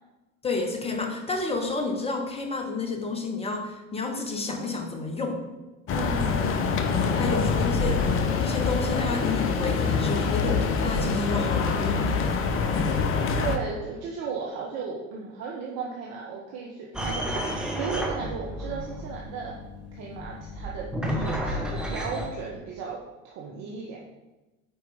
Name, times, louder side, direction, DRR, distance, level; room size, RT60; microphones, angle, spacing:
voice 1, 0.4-5.4 7.1-8.0 8.4-13.0, left 3 dB, 15° left, 4 dB, 1.2 m, -30 dB
sound 1, 5.9-13.6, left 5 dB, 30° left, 0.8 m, -25 dB
voice 2, 5.9-6.5 7.1-7.2 13.4-19.5 19.9-24.0, right 5 dB, 40° right, -3 dB, 1.1 m, -35 dB
sound 2, 16.9-22.3, equal, ahead, 1.0 m, -32 dB
8.9 x 4.6 x 3.5 m, 1.1 s
figure-of-eight pair, 80°, 39 cm